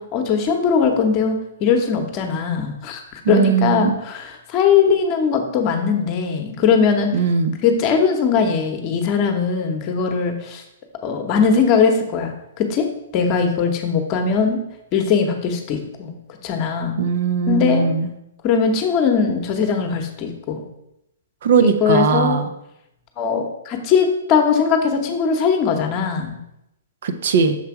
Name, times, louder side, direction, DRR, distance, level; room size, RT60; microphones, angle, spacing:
voice 1, 0.0-7.1 7.6-10.6 11.0-12.9 13.1-14.6 14.9-16.1 16.4-16.9 17.5-17.9 18.4-20.6 21.6-22.4 23.2-26.4, left 6 dB, 35° left, 5 dB, 0.9 m, -20 dB
voice 2, 3.2-4.0 7.1-7.5 17.0-18.1 21.4-22.5 27.0-27.6, right 6 dB, 60° right, 8 dB, 0.6 m, -19 dB
6.7 x 3.3 x 4.8 m, 0.83 s
hypercardioid pair, 120°, 0 cm